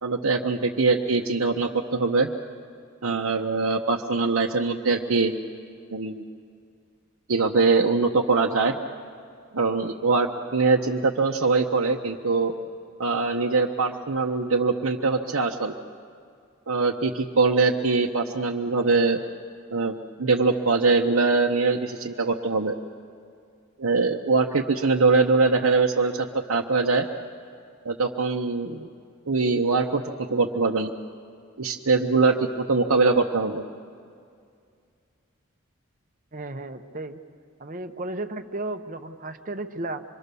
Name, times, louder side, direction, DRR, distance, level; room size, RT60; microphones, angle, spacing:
voice 1, 0.0-2.3 3.0-5.3 5.9-6.2 7.3-8.8 9.5-12.5 13.0-15.7 16.7-19.2 19.7-22.8 23.8-27.1 27.8-28.9 29.3-30.0 30.3-30.9 31.6-33.6, right 4 dB, 80° right, 0 dB, 0.9 m, -22 dB
voice 2, 36.3-37.2 37.6-40.0, right 2 dB, 40° right, 8 dB, 0.8 m, -34 dB
26.0 x 22.5 x 6.9 m, 2.3 s
head